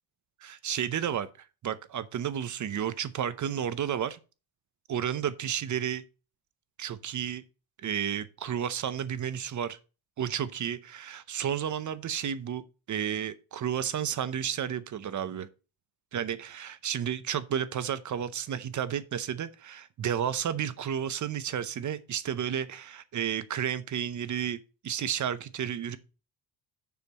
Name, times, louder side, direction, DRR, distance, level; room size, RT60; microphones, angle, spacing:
voice 1, 0.4-1.3 1.6-4.2 4.9-6.0 6.8-7.4 7.8-9.8 10.2-12.6 12.9-15.5 16.1-24.6 24.8-26.0, right 9 dB, 35° right, 0.7 m, -32 dB
6.9 x 6.5 x 5.3 m
cardioid pair, 175°, 49 cm